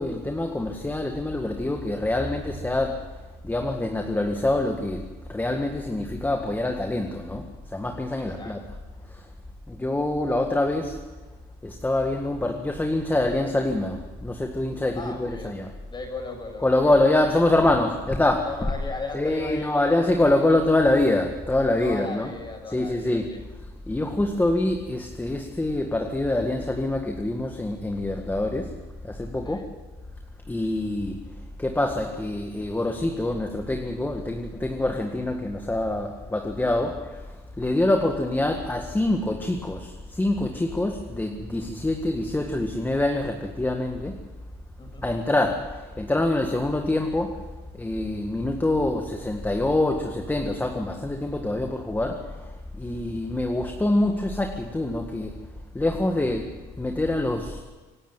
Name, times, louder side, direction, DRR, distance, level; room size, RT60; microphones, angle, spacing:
voice 1, 0.0-8.6 9.1-9.3 9.7-11.0 11.6-15.7 16.6-18.7 19.1-29.6 30.5-44.2 45.0-57.6, left 2 dB, 10° left, 3 dB, 1.8 m, -25 dB
voice 2, 15.0-15.5 15.9-16.9 18.4-20.6 21.8-23.4 29.4-29.7 37.6-37.9 44.8-45.1, left 3 dB, 25° left, 4 dB, 6.5 m, -37 dB
25.5 x 12.0 x 9.2 m, 1.3 s
cardioid pair, 110°, 17 cm